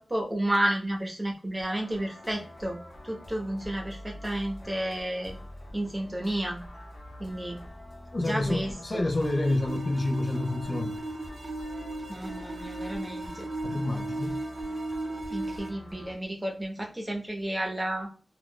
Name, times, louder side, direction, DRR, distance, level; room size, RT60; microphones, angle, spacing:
voice 1, 0.0-2.8 3.0-5.4 5.7-6.6 7.2-7.6 8.2-9.1 12.1-13.5 15.3-18.1, right 1 dB, 20° right, 0.9 m, -31 dB
sound 1, 1.6-16.1, left 1 dB, 70° left, 1.1 m, -46 dB
voice 2, 8.1-11.0 13.6-14.4, left 2 dB, 50° left, 0.5 m, -28 dB
sound 2, 9.2-15.7, right 2 dB, 85° right, 0.8 m, -36 dB
3.5 x 2.4 x 2.2 m
wide cardioid pair, 85°, 0 cm